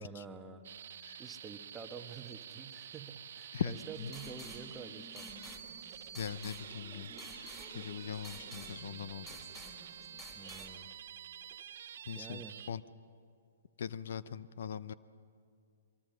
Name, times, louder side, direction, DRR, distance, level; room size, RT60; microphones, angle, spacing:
voice 1, 0.0-5.3 10.3-10.9 12.1-12.6, right 5 dB, 10° right, 6 dB, 1.2 m, -49 dB
sound 1, 0.6-12.7, right 9 dB, 65° right, 0.7 m, -49 dB
voice 2, 3.5-4.1 6.2-9.4 10.4-10.6 12.1-12.4 12.7-12.8 13.8-14.9, left 8 dB, 65° left, 16 dB, 0.6 m, -41 dB
sound 2, 3.6-10.7, equal, 10° left, 4.0 m, -51 dB
sound 3, 5.3-11.6, right 7 dB, 35° right, 1.7 m, -61 dB
24.0 x 21.5 x 6.5 m, 2.3 s
hypercardioid pair, 140°, 0 cm